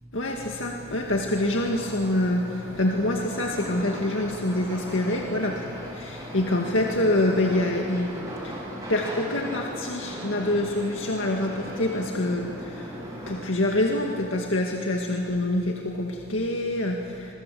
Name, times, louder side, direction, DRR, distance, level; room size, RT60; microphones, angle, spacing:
voice 1, 0.1-17.3, left 1 dB, 80° left, 1 dB, 2.0 m, -26 dB
sound 1, 1.3-13.4, equal, 15° right, 7.9 m, -38 dB
26.0 x 24.0 x 7.8 m, 2.6 s
head